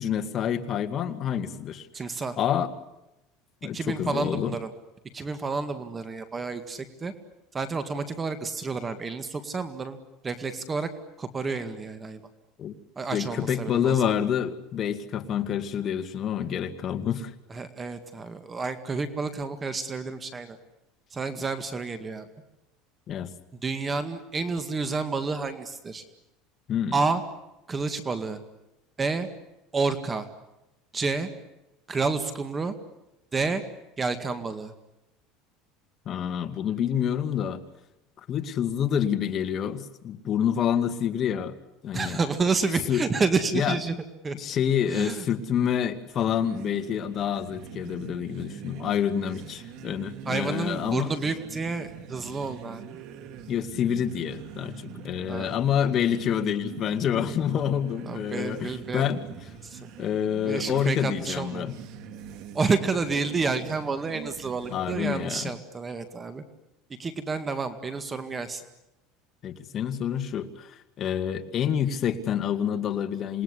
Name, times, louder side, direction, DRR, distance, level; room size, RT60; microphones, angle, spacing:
voice 1, 0.0-1.9 2.4-2.7 3.6-4.6 12.6-12.7 13.1-17.3 23.1-23.3 26.7-27.0 36.1-37.6 38.3-41.6 41.8-42.2 42.9-43.0 43.5-43.8 44.3-51.1 53.5-59.2 60.0-61.8 64.7-65.5 69.4-73.4, left 9 dB, 35° left, 8 dB, 2.2 m, -27 dB
voice 2, 1.9-2.4 3.7-4.7 5.1-7.1 7.5-10.0 10.2-10.9 11.2-12.2 13.0-14.0 17.5-20.6 21.1-22.3 23.6-26.0 26.9-27.2 27.7-28.4 29.0-29.3 29.7-30.3 30.9-31.3 31.9-32.7 33.3-33.6 34.0-34.7 41.9-44.0 44.2-44.4 44.9-45.2 50.3-52.8 55.3-55.5 58.1-59.1 59.6-59.8 60.5-61.6 62.5-66.4 67.0-68.6, right 4 dB, 20° right, 10 dB, 2.0 m, -29 dB
sound 1, 46.1-65.6, right 8 dB, 60° right, 2.4 m, -43 dB
27.5 x 20.0 x 9.9 m, 0.92 s
cardioid pair, 140°, 0 cm